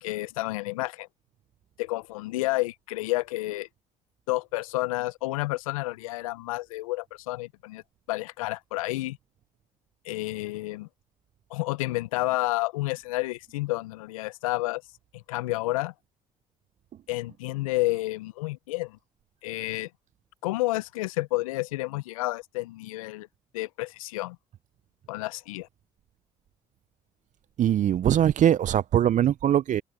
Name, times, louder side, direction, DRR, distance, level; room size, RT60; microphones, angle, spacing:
voice 1, 0.0-1.1 1.8-3.7 4.3-7.8 8.1-9.2 10.0-10.9 11.5-14.8 15.1-15.9 17.1-19.0 19.4-19.9 20.4-23.3 23.5-24.4 25.1-25.7, left 20 dB, 85° left, 0.7 m, -30 dB
voice 2, 27.6-29.8, right 10 dB, 45° right, 0.6 m, -22 dB
hypercardioid pair, 55°, 17 cm